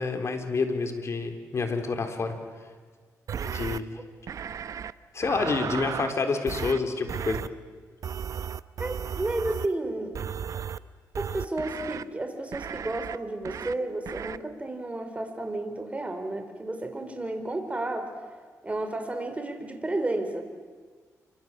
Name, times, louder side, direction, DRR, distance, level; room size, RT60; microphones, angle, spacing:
voice 1, 0.0-2.4 3.4-4.0 5.1-7.4, left 4 dB, 50° left, 6 dB, 3.8 m, -28 dB
sound 1, 3.3-3.8 4.3-4.9 5.2-6.1 6.5-6.8 7.1-7.5 8.0-9.7 10.1-10.8 11.1-12.0 12.5-13.2 13.4-13.7 14.1-14.4, right 8 dB, 60° right, 0.8 m, -34 dB
voice 2, 8.8-10.2 11.2-18.3 18.6-20.4, right 2 dB, 20° right, 6 dB, 4.5 m, -32 dB
27.5 x 25.0 x 7.6 m, 1.5 s
cardioid pair, 75°, 6 cm